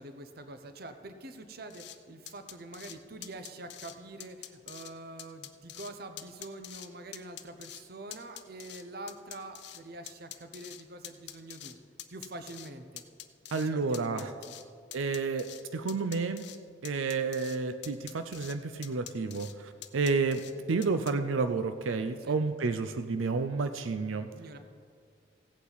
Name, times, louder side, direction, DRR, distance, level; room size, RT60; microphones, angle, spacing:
voice 1, 0.0-11.8 12.1-13.0 13.5-14.6 22.2-22.4 24.4-24.6, right 2 dB, 50° right, 8 dB, 0.8 m, -45 dB
sound 1, 1.7-2.0 2.3-3.0 3.2-4.9 5.2-5.9 6.2-6.9 7.1-7.8 8.1-9.8 10.1-11.7 12.0-12.7 13.0-13.7 13.9-14.6 14.9-15.6 15.9-16.6 16.8-17.6 17.8-18.5 18.8-19.5 19.8-20.5 20.8-21.1, left 12 dB, 60° left, 0.5 m, -45 dB
voice 2, 13.5-14.3 14.9-16.4 16.8-20.4 20.7-24.3, right 4 dB, 90° right, 8 dB, 0.5 m, -30 dB
16.0 x 8.4 x 4.1 m, 2.1 s
head